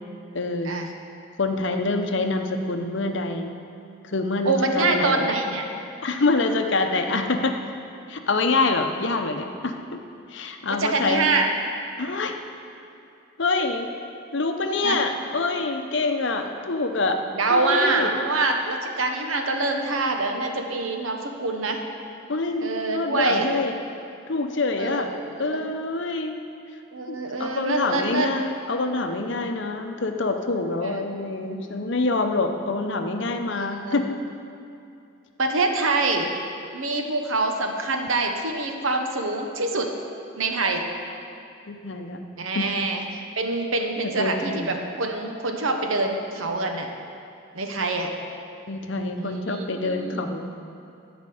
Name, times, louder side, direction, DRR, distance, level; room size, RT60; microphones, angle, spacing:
voice 1, 0.3-0.7 1.4-3.5 4.0-5.3 6.0-7.6 8.1-10.0 10.3-11.3 12.0-12.4 13.4-13.9 14.3-18.1 22.3-23.8 24.3-25.1 25.4-26.4 27.1-34.2 41.7-42.2 42.5-42.7 44.2-44.7 48.7-50.5, left 3 dB, 60° left, 5 dB, 0.7 m, -26 dB
voice 2, 4.4-5.7 10.8-11.5 14.8-15.0 17.4-21.8 22.6-23.5 24.8-25.6 26.9-28.3 30.8-31.0 33.5-34.1 35.4-36.3 36.7-39.9 40.4-40.8 42.4-43.0 43.4-46.9 47.5-48.1 49.2-50.3, right 3 dB, 75° right, 3 dB, 1.0 m, -25 dB
11.0 x 5.2 x 7.8 m, 2.6 s
head